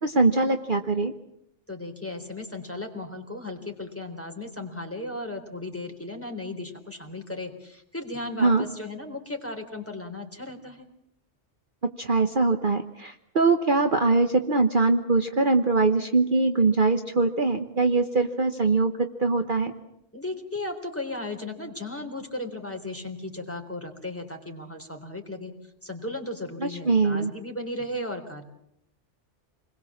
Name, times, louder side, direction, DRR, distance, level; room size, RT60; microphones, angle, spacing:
voice 1, 0.0-1.1 8.4-8.6 12.0-19.7 26.6-27.3, right 3 dB, 45° right, 6 dB, 1.3 m, -22 dB
voice 2, 1.7-10.9 20.1-28.4, left 2 dB, 10° left, 3 dB, 3.7 m, -36 dB
28.5 x 21.0 x 7.3 m, 0.76 s
omnidirectional pair, 1.2 m